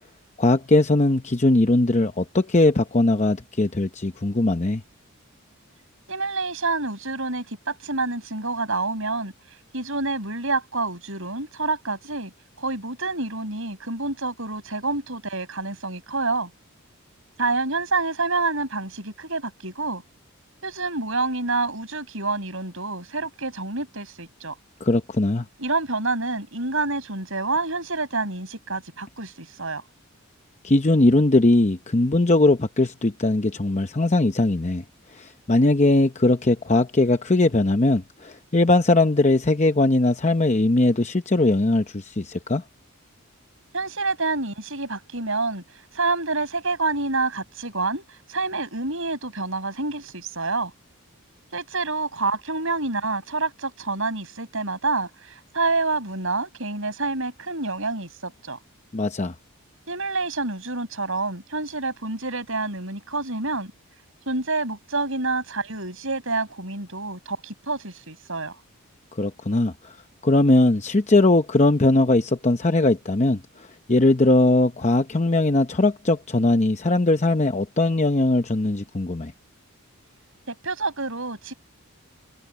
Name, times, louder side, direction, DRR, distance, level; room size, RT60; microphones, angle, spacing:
voice 1, 0.4-4.8 24.8-25.4 30.6-34.8 35.1-42.6 58.9-59.3 69.1-70.0 70.2-79.3, left 2 dB, 30° left, 0.8 m, -20 dB
voice 2, 6.1-9.3 9.7-12.3 12.6-16.5 17.4-20.0 20.6-24.5 25.6-29.8 43.7-45.6 45.9-48.0 48.3-50.7 51.5-58.6 59.9-63.7 64.3-68.5 80.5-81.5, right 3 dB, 60° right, 7.6 m, -27 dB
head